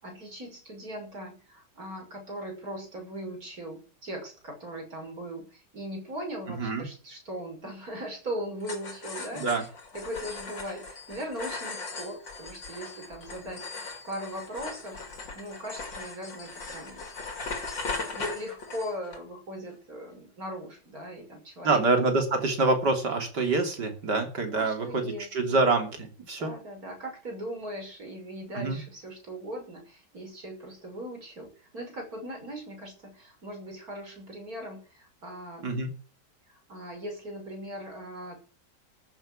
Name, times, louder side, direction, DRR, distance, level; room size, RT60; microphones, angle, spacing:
voice 1, 0.0-9.7 9.9-17.0 18.1-21.8 24.5-25.6 26.4-35.7 36.5-38.4, equal, 50° right, 2 dB, 6.4 m, -39 dB
sound 1, 8.6-19.2, left 4 dB, 90° left, 3.6 m, -39 dB
voice 2, 9.3-9.6 21.6-26.5 28.5-28.8 35.6-35.9, right 3 dB, 65° right, 5 dB, 3.6 m, -26 dB
14.0 x 8.4 x 7.4 m, 0.38 s
omnidirectional pair, 1.9 m